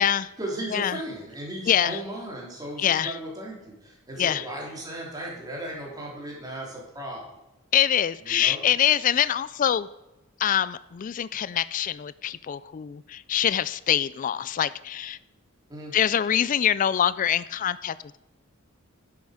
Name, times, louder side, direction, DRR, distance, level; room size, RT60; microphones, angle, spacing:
voice 1, 0.4-7.3 8.2-8.6 15.7-15.9, right 1 dB, 20° right, -3 dB, 3.3 m, -36 dB
voice 2, 1.7-2.0 2.8-3.1 4.2-4.4 7.7-9.9 10.4-15.2 15.9-18.2, left 10 dB, 40° left, 17 dB, 0.3 m, -24 dB
10.5 x 8.0 x 4.9 m, 0.98 s
head